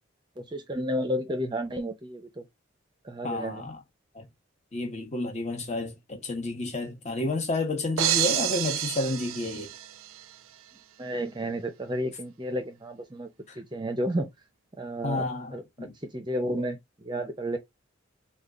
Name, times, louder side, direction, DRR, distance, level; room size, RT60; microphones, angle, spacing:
voice 1, 0.4-2.4 3.0-3.7 11.0-13.3 13.6-14.3 14.8-17.6, equal, 20° right, 0.6 m, -32 dB
voice 2, 3.2-3.8 4.1-4.2 4.7-9.7 15.0-15.5 15.8-15.9, left 2 dB, 35° left, 1.0 m, -30 dB
sound 1, 8.0-10.2, right 12 dB, 80° right, 0.4 m, -28 dB
3.6 x 2.3 x 3.7 m
head